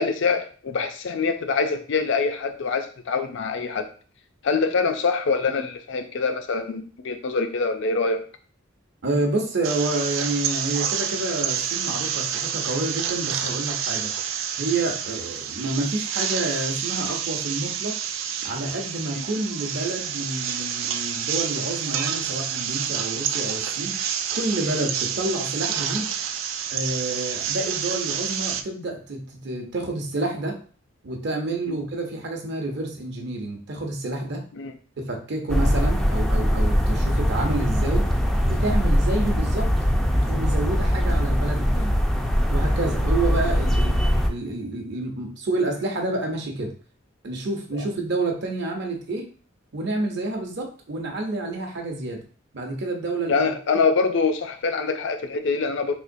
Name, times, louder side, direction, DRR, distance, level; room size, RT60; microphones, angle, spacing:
voice 1, 0.0-3.9 4.4-8.2 19.1-19.2 31.7-31.8 34.5-34.7 47.7-47.8 53.3-56.0, left 4 dB, 65° left, 8 dB, 0.5 m, -24 dB
voice 2, 9.0-14.1 14.6-17.9 18.4-24.0 24.3-26.1 26.7-30.6 31.0-34.4 35.1-38.1 38.5-39.7 40.1-42.0 42.5-44.0 44.3-46.7 47.2-49.3 49.7-52.2 52.5-53.8, right 2 dB, 60° right, 3 dB, 0.7 m, -29 dB
sound 1, 9.6-28.6, right 8 dB, 75° right, 0.3 m, -28 dB
sound 2, 35.5-44.3, equal, ahead, 0.3 m, -21 dB
3.5 x 2.9 x 2.6 m, 0.41 s
head